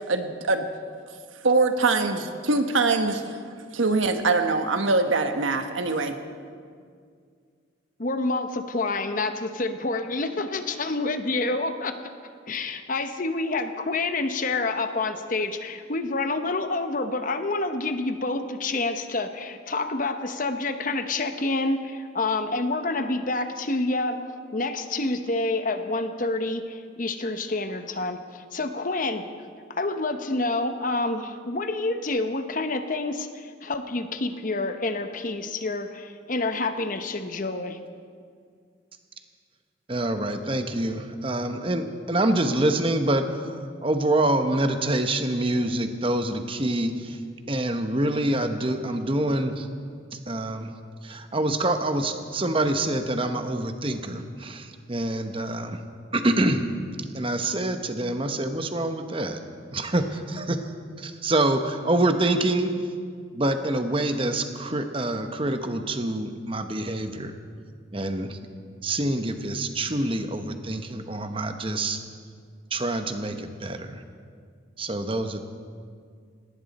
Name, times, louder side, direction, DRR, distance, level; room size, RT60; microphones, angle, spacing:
voice 1, 0.1-0.6 1.4-3.2 3.7-6.1, right 3 dB, 85° right, 7 dB, 1.2 m, -23 dB
voice 2, 8.0-11.9 12.5-24.2 24.5-29.2 29.7-37.8, left 2 dB, 45° left, 8 dB, 0.9 m, -28 dB
voice 3, 39.9-47.2 47.5-49.7 50.1-50.7 51.0-55.8 56.1-56.6 57.1-59.4 59.7-60.7 61.0-62.7 63.3-67.3 67.9-68.4 68.8-72.0 72.7-74.0 74.8-75.4, right 1 dB, 25° right, 7 dB, 1.0 m, -26 dB
18.0 x 18.0 x 4.2 m, 2.1 s
head